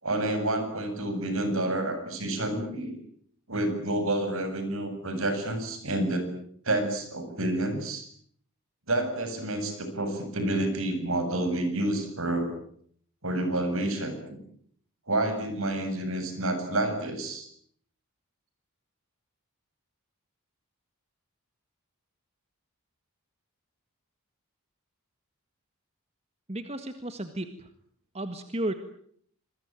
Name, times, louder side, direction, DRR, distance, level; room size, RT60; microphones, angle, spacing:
voice 1, 0.0-2.9 3.5-6.3 6.6-8.1 8.9-12.5 13.2-14.4 15.1-17.5, right 1 dB, 65° right, 8 dB, 7.8 m, -29 dB
voice 2, 26.5-27.7 28.1-28.7, right 1 dB, 30° right, 8 dB, 1.7 m, -33 dB
27.0 x 21.5 x 9.0 m, 0.65 s
head